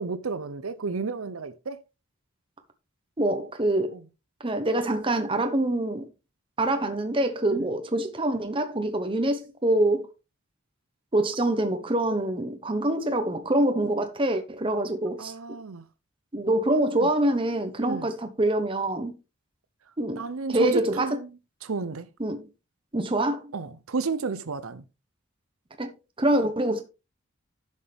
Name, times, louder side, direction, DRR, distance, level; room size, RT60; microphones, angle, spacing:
voice 1, 0.0-1.8 3.9-4.0 7.5-7.6 15.2-15.8 16.9-17.1 17.8-18.1 20.1-21.3 21.6-22.1 23.5-24.8, right 4 dB, 80° right, 0.7 m, -32 dB
voice 2, 3.2-4.0 4.4-6.1 6.6-10.1 11.1-15.3 16.3-19.2 20.0-20.2 20.5-21.2 22.2-22.4 22.9-23.5 25.8-25.9 26.2-26.8, right 1 dB, 25° right, 1.0 m, -25 dB
10.5 x 6.5 x 3.4 m
head